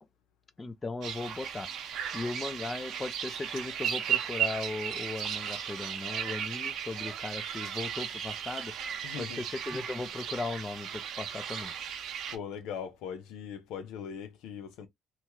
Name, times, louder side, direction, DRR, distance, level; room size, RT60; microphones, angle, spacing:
voice 1, 0.6-1.7 2.1-8.7 9.2-11.7, left 3 dB, 25° left, 0.5 m, -37 dB
sound 1, 1.0-12.4, right 9 dB, 70° right, 0.7 m, -35 dB
voice 2, 9.0-9.5 12.3-14.9, left 7 dB, 80° left, 0.5 m, -40 dB
2.9 x 2.3 x 2.8 m
supercardioid pair, 70°, 0 cm